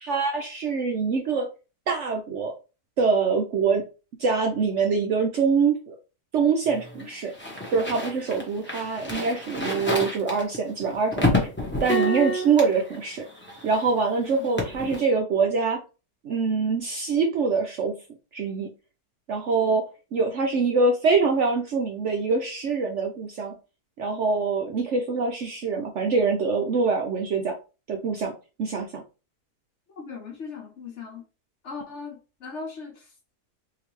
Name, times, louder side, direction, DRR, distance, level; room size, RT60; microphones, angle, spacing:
voice 1, 0.0-1.5 1.9-2.5 3.0-3.8 4.2-6.0 6.3-7.3 7.7-11.5 11.8-13.2 13.6-15.8 16.2-18.0 18.3-18.7 19.3-19.8 20.1-23.5 24.0-27.5 27.9-28.3 28.6-29.0, right 4 dB, 60° right, 0.8 m, -24 dB
sound 1, 6.7-14.0 14.2-15.1, left 1 dB, 10° left, 0.7 m, -29 dB
voice 2, 30.0-31.2 31.6-33.1, left 5 dB, 55° left, 1.0 m, -38 dB
3.8 x 2.8 x 3.0 m
omnidirectional pair, 1.7 m